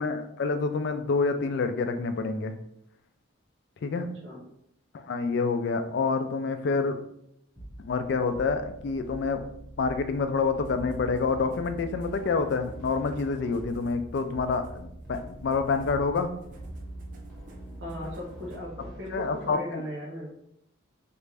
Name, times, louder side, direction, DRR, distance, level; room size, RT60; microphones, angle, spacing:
voice 1, 0.0-2.5 3.8-4.1 5.0-7.0 7.8-9.4 9.8-16.3 19.1-19.8, left 4 dB, 55° left, 8 dB, 0.3 m, -27 dB
voice 2, 3.9-4.4 17.8-20.3, equal, 60° right, -4 dB, 0.8 m, -38 dB
sound 1, 7.5-19.5, right 1 dB, 5° left, 0.9 m, -44 dB
sound 2, 10.6-18.7, right 2 dB, 40° right, 0.4 m, -47 dB
3.2 x 2.5 x 3.3 m, 0.75 s
head